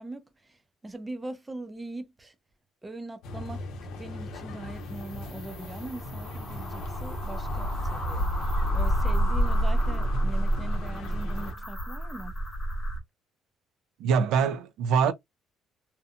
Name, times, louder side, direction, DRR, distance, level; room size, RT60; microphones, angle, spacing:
voice 1, 0.0-2.4 2.8-3.7 4.0-12.3, right 2 dB, 10° right, 0.4 m, -41 dB
sound 1, 3.2-11.5, left 2 dB, 75° left, 0.7 m, -39 dB
sound 2, 4.8-13.0, equal, 15° left, 0.8 m, -29 dB
voice 2, 14.0-15.1, right 6 dB, 80° right, 0.3 m, -24 dB
2.7 x 2.1 x 2.4 m
cardioid pair, 160°, 0 cm